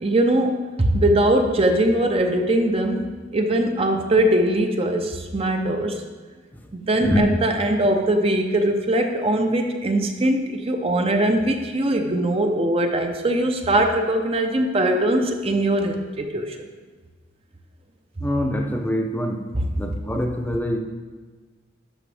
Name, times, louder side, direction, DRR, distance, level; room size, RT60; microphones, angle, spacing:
voice 1, 0.0-6.0 6.7-16.6 19.5-20.0, right 1 dB, 30° right, 4 dB, 0.6 m, -21 dB
voice 2, 18.2-19.4 19.8-20.8, equal, 10° left, 2 dB, 0.7 m, -24 dB
11.0 x 5.7 x 3.4 m, 1.4 s
head